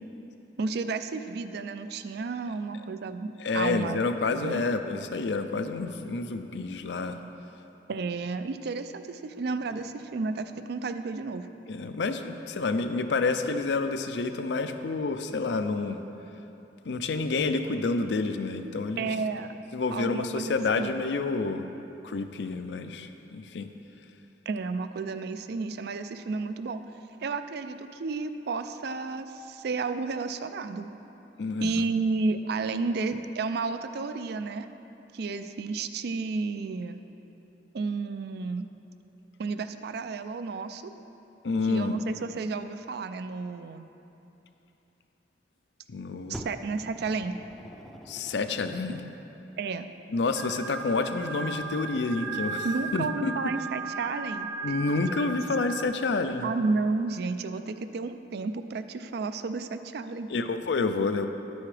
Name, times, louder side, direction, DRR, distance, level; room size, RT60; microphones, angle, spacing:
voice 1, 0.6-4.0 4.3-4.6 7.9-11.5 19.0-19.6 19.9-21.0 24.5-26.8 27.2-30.9 31.6-34.7 35.1-37.0 37.7-38.7 39.4-40.9 41.7-43.9 46.3-47.4 49.6-49.9 52.6-54.5 55.2-55.3 56.4-60.3, right 4 dB, 65° right, 10 dB, 0.4 m, -32 dB
voice 2, 3.4-7.2 11.7-16.0 16.8-19.1 19.7-21.7 22.0-23.7 31.4-31.8 41.4-42.0 45.9-46.4 48.1-49.0 50.1-52.7 52.9-53.3 54.6-56.5 60.3-61.3, left 3 dB, 75° left, 8 dB, 0.5 m, -29 dB
Fire, 46.3-49.2 50.0-50.1, equal, ahead, 0.5 m, -44 dB
sound 1, 50.4-55.8, right 4 dB, 90° right, 0.8 m, -36 dB
9.7 x 9.4 x 3.3 m, 3.0 s
head